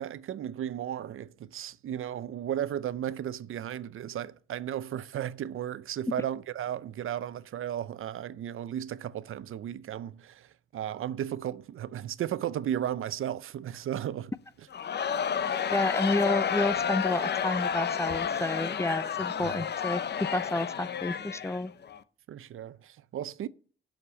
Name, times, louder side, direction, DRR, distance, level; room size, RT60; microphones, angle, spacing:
voice 1, 0.0-14.3 19.4-19.6 22.3-23.5, right 10 dB, 75° right, 0.6 m, -35 dB
Crowd, 14.7-22.0, left 8 dB, 55° left, 0.7 m, -31 dB
voice 2, 15.7-21.7, left 2 dB, 15° left, 0.4 m, -30 dB
8.6 x 6.5 x 8.0 m
cardioid pair, 110°, 21 cm